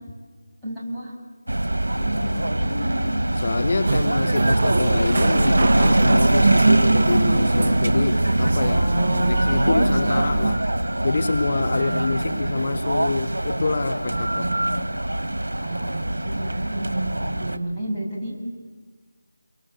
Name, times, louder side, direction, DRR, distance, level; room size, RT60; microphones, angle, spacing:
voice 1, 0.6-1.2 2.0-3.1 3.6-3.7 8.7-10.4 11.7-12.4 14.1-14.7 15.6-18.3, right 1 dB, 5° right, -11 dB, 7.3 m, -31 dB
sound 1, 1.5-17.6, right 1 dB, 75° right, 1.9 m, -23 dB
voice 2, 3.3-10.7 11.0-14.8, left 4 dB, 45° left, 11 dB, 0.8 m, -27 dB
sound 2, 3.9-10.6, right 3 dB, 45° right, 0.9 m, -24 dB
29.5 x 23.5 x 8.0 m, 1.4 s
figure-of-eight pair, 160°, 0 cm